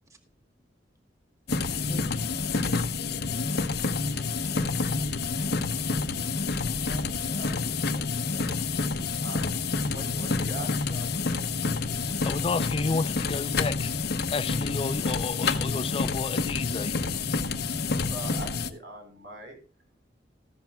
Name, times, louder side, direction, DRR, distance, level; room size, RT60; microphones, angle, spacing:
sound 1, 1.5-18.7, left 4 dB, 60° left, 0.8 m, -28 dB
voice 1, 4.0-4.9 5.3-6.3, equal, 15° right, 1.3 m, -48 dB
voice 2, 6.9-8.5 9.2-11.3 17.6-19.6, right 2 dB, 80° right, 4.5 m, -44 dB
voice 3, 12.2-13.9 14.3-17.0, left 3 dB, 30° left, 0.4 m, -30 dB
14.5 x 11.5 x 2.3 m
head